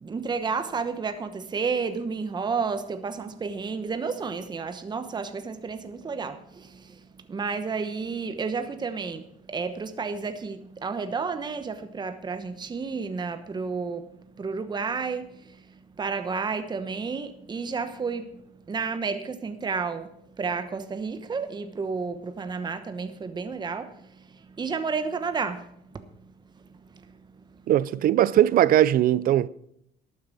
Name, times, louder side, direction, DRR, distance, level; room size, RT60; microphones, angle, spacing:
voice 1, 0.0-25.7 25.9-27.6, right 5 dB, 25° right, 1.0 m, -32 dB
voice 2, 27.7-29.5, right 12 dB, 60° right, 0.5 m, -20 dB
12.0 x 9.2 x 6.1 m
cardioid pair, 110°, 17 cm